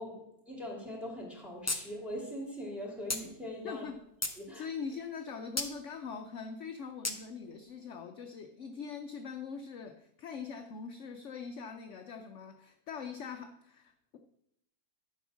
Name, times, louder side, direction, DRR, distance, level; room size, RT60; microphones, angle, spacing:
voice 1, 0.0-3.9 4.4-4.7, left 1 dB, ahead, 0 dB, 2.5 m, -41 dB
magnets clicking together, 1.7-1.8 2.1-2.2 3.1-3.2 3.8-4.4 5.6-5.7 7.0-7.2, left 2 dB, 25° left, 0.3 m, -33 dB
voice 2, 3.6-4.0 4.5-14.2, left 5 dB, 60° left, 6 dB, 0.9 m, -42 dB
10.5 x 5.4 x 6.2 m, 0.78 s
omnidirectional pair, 1.7 m